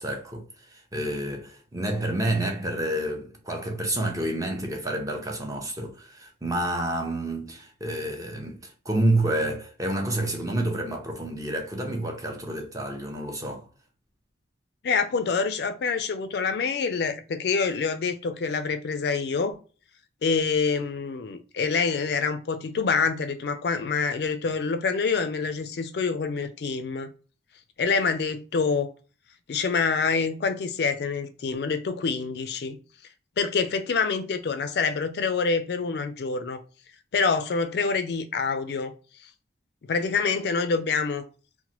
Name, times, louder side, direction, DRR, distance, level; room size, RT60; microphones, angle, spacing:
voice 1, 0.0-13.7, right 1 dB, 20° right, 0.5 m, -29 dB
voice 2, 14.8-19.6 20.2-27.1 27.8-28.9 29.5-32.8 33.4-36.6 37.1-38.9 39.9-41.2, left 5 dB, 60° left, 0.3 m, -26 dB
2.9 x 2.1 x 2.8 m
head